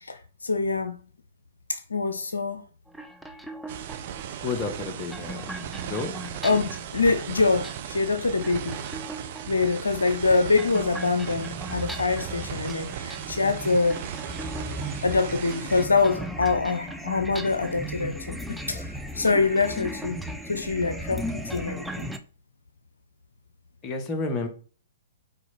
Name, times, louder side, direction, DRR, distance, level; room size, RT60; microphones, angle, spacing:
voice 1, 0.0-1.0 1.7-2.6 6.4-8.8 9.5-14.0 15.0-18.4 18.7-20.2 20.5-22.1, left 4 dB, 75° left, 0.7 m, -25 dB
sound 1, 2.9-22.2, right 1 dB, ahead, 0.7 m, -37 dB
sound 2, 3.7-15.9, right 9 dB, 45° right, 0.8 m, -37 dB
voice 2, 4.4-5.5 5.8-6.2 23.8-24.5, left 3 dB, 25° left, 1.6 m, -30 dB
6.5 x 4.7 x 4.4 m
figure-of-eight pair, 115°, 0 cm